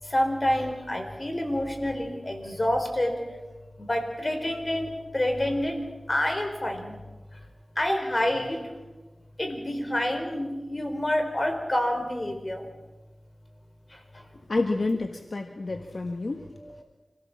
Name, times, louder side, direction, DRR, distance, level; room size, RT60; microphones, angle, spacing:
voice 1, 0.0-3.3 3.8-5.8 6.1-7.0 7.8-8.7 9.4-12.7 16.5-16.8, left 1 dB, 30° left, 4 dB, 4.6 m, -28 dB
voice 2, 14.5-16.4, left 3 dB, 60° left, 5 dB, 1.5 m, -29 dB
26.0 x 17.5 x 7.4 m, 1.2 s
wide cardioid pair, 60°, 0 cm